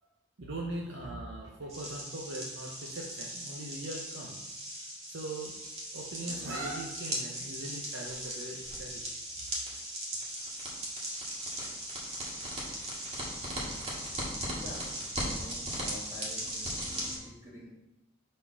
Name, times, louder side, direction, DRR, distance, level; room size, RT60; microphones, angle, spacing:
voice 1, 0.4-4.4 5.1-5.5 5.9-9.0, right 1 dB, 80° right, -2 dB, 0.9 m, -40 dB
sound 1, 1.7-17.2, right 1 dB, 35° right, 1.8 m, -38 dB
voice 2, 14.5-17.7, equal, 15° right, -6 dB, 2.0 m, -48 dB
5.3 x 4.4 x 5.8 m, 0.94 s
head